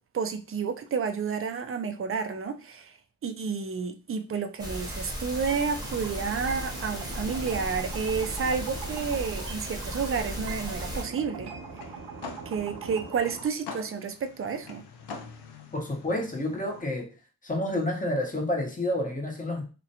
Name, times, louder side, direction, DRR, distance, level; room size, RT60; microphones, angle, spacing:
voice 1, 0.1-3.0 3.2-11.5 12.5-14.8, right 5 dB, 35° right, 0.4 m, -30 dB
sound 1, 4.6-11.0, equal, 10° right, 1.0 m, -36 dB
sound 2, 5.5-13.5, right 5 dB, 90° right, 0.6 m, -42 dB
sound 3, 11.3-16.8, left 5 dB, 80° left, 0.6 m, -45 dB
voice 2, 15.7-17.1 17.4-19.6, left 1 dB, 20° left, 0.9 m, -29 dB
2.4 x 2.1 x 2.8 m
cardioid pair, 45°, 39 cm